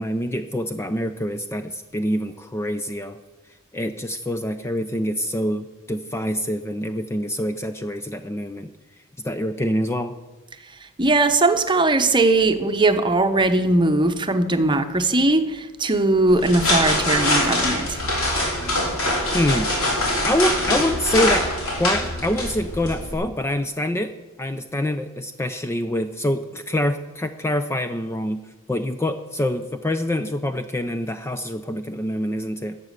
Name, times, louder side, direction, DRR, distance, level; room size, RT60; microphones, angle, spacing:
voice 1, 0.0-3.2 3.7-8.7 9.2-10.1 19.3-19.8 20.2-21.5 21.8-24.1 24.4-28.4 28.7-32.8, left 1 dB, 10° left, 9 dB, 0.4 m, -25 dB
voice 2, 11.0-18.0, right 2 dB, 25° right, 8 dB, 0.9 m, -19 dB
sound 1, 16.3-23.1, left 1 dB, 75° left, 3.9 m, -23 dB
12.5 x 7.5 x 8.0 m, 1.2 s
head